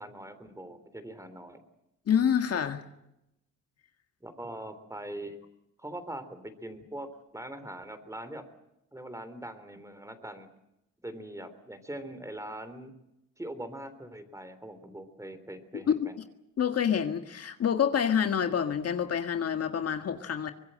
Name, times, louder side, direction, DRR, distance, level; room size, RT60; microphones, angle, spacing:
voice 1, 0.0-1.6 4.2-5.4 5.8-8.5 8.9-10.5 11.0-12.9 13.4-16.2, right 1 dB, 10° right, 11 dB, 3.5 m, -42 dB
voice 2, 2.1-2.8 15.9-16.1 16.6-20.5, left 8 dB, 55° left, 7 dB, 1.8 m, -27 dB
24.0 x 20.5 x 7.8 m, 0.87 s
cardioid pair, 90°, 30 cm